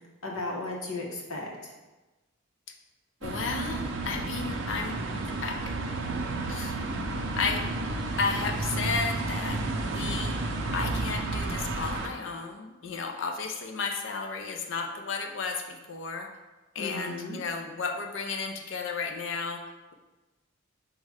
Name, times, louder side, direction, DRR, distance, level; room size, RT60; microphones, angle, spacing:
voice 1, 0.2-1.7 16.8-17.4, left 2 dB, 90° left, -1 dB, 0.8 m, -35 dB
voice 2, 3.2-5.0 5.4-5.6 6.5-6.8 7.4-7.6 8.2-10.3 10.7-16.3 16.7-19.6, left 4 dB, 60° left, 3 dB, 0.5 m, -33 dB
sound 1, 3.2-12.1, right 2 dB, 60° right, 0.5 m, -31 dB
4.9 x 2.1 x 4.8 m, 1.1 s
head